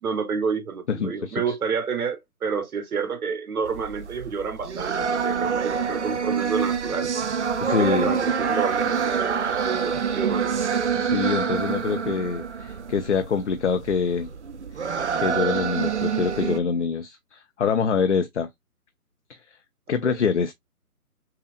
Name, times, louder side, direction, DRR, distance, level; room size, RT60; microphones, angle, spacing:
voice 1, 0.0-7.1 7.7-10.5 20.0-20.2, right 5 dB, 70° right, 1.1 m, -29 dB
voice 2, 0.9-1.4 7.6-8.1 10.9-14.3 14.8-18.5 19.9-20.5, left 6 dB, 55° left, 0.5 m, -25 dB
sound 1, 3.7-16.6, right 6 dB, 50° right, 0.5 m, -26 dB
5.5 x 2.0 x 2.4 m
hypercardioid pair, 160°, 45 cm